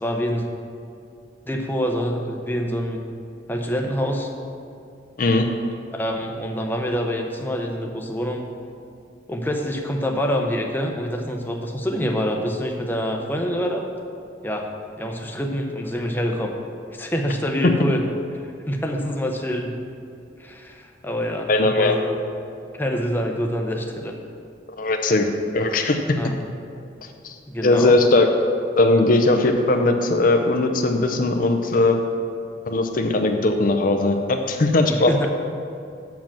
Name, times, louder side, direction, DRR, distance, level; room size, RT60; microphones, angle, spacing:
voice 1, 0.0-0.4 1.5-3.0 3.5-4.3 5.9-8.4 9.3-13.9 14.4-14.7 15.0-16.5 16.9-18.0 18.7-19.7 20.4-22.1 22.8-24.2 26.2-26.3 27.5-27.9 34.9-35.3, equal, 10° left, 1 dB, 0.7 m, -26 dB
voice 2, 21.5-22.0 24.8-25.3 25.5-26.0 27.2-27.3 27.6-28.3 28.8-32.0 32.7-35.3, left 2 dB, 45° left, 5 dB, 0.6 m, -19 dB
7.5 x 5.9 x 7.4 m, 2.5 s
head